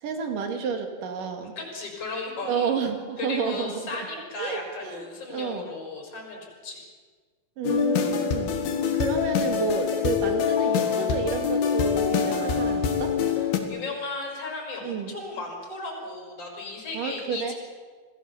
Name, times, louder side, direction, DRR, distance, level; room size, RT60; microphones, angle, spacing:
voice 1, 0.0-1.6 2.4-4.1 4.4-5.7 7.6-13.1 14.8-15.1 16.9-17.5, right 6 dB, 65° right, 5 dB, 3.7 m, -30 dB
voice 2, 1.6-2.7 3.2-6.8 13.7-17.5, left 3 dB, 40° left, 1 dB, 6.4 m, -35 dB
sound 1, 7.6-13.6, left 7 dB, 80° left, 3.8 m, -25 dB
27.0 x 19.0 x 7.2 m, 1.5 s
omnidirectional pair, 4.3 m